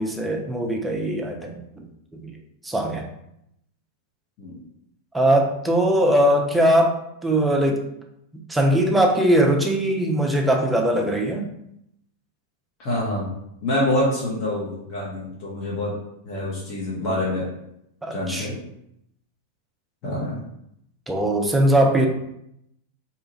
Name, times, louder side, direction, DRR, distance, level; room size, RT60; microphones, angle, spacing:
voice 1, 0.0-1.8 2.1-2.3 2.6-3.0 5.1-7.9 8.5-11.5 18.0-18.5 21.1-22.1, right 1 dB, 10° right, 1 dB, 0.4 m, -20 dB
voice 2, 12.8-13.3 13.6-15.9 16.2-17.5 18.1-18.6 20.0-20.4, left 1 dB, 40° left, -6 dB, 0.8 m, -26 dB
2.7 x 2.3 x 2.8 m, 0.79 s
figure-of-eight pair, 90°, 0 cm